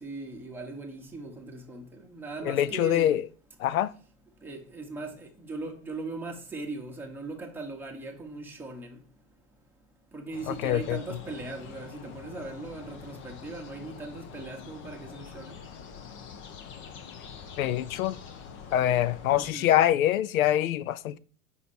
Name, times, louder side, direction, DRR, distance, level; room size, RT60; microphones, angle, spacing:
voice 1, 0.0-3.2 4.4-9.0 10.1-15.6 19.3-19.7, right 3 dB, 5° right, 1.1 m, -39 dB
voice 2, 2.5-3.2 3.6-3.9 10.5-11.0 17.6-18.2 18.7-21.2, left 12 dB, 80° left, 0.5 m, -24 dB
sound 1, 10.3-19.5, left 6 dB, 30° left, 0.7 m, -45 dB
5.5 x 4.1 x 4.3 m
hypercardioid pair, 115°, 42 cm